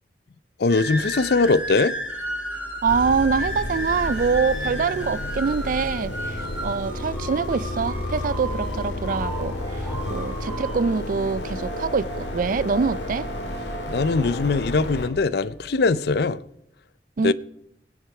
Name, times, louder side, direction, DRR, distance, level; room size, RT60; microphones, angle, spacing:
voice 1, 0.6-1.9 9.9-10.2 13.9-16.4 17.2-17.3, left 3 dB, 65° left, 0.5 m, -21 dB
sound 1, 0.7-16.3, equal, 5° right, 3.0 m, -35 dB
voice 2, 2.8-13.3 17.2-17.3, right 5 dB, 50° right, 0.4 m, -25 dB
sound 2, 2.9-15.1, left 1 dB, 90° left, 2.0 m, -31 dB
17.0 x 9.8 x 4.8 m
head